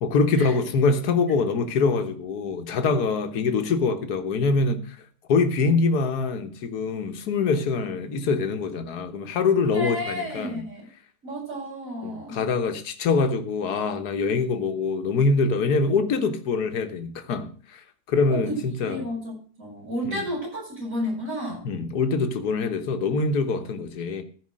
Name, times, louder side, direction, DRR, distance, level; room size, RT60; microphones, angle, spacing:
voice 1, 0.0-5.0 5.3-10.6 12.0-19.0 20.1-20.3 21.6-24.2, left 4 dB, 75° left, 1.7 m, -24 dB
voice 2, 9.6-10.8 11.2-12.4 18.3-21.6, equal, 55° right, 8.5 m, -32 dB
15.0 x 5.0 x 7.5 m
omnidirectional pair, 1.7 m